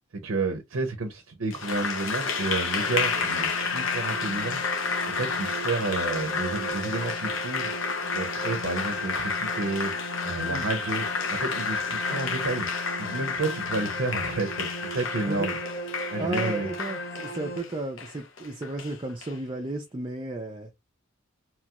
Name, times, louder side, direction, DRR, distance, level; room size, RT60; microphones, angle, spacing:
voice 1, 0.1-4.6 5.1-7.7 8.1-9.9 10.2-12.7 13.0-15.6 16.1-16.7, right 3 dB, 75° right, 0.6 m, -31 dB
Applause, 1.5-19.3, left 5 dB, 70° left, 0.7 m, -31 dB
sound 1, 2.8-17.6, left 1 dB, 50° left, 1.3 m, -36 dB
voice 2, 16.2-20.7, right 2 dB, 25° right, 0.4 m, -33 dB
3.0 x 2.3 x 2.8 m
head